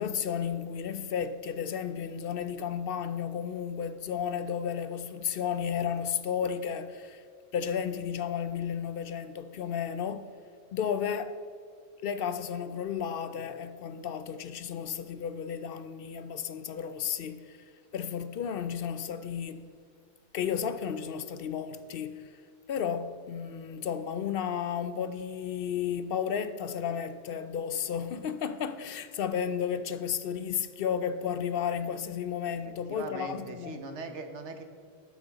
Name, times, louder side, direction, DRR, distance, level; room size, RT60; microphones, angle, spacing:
voice 1, 0.0-7.2 7.5-10.3 10.7-11.3 12.0-17.6 17.9-19.6 20.3-22.4 22.7-33.8, left 8 dB, 60° left, 0.7 m, -33 dB
voice 2, 32.6-34.6, right 3 dB, 80° right, 1.3 m, -40 dB
12.5 x 9.4 x 4.0 m
omnidirectional pair, 1.2 m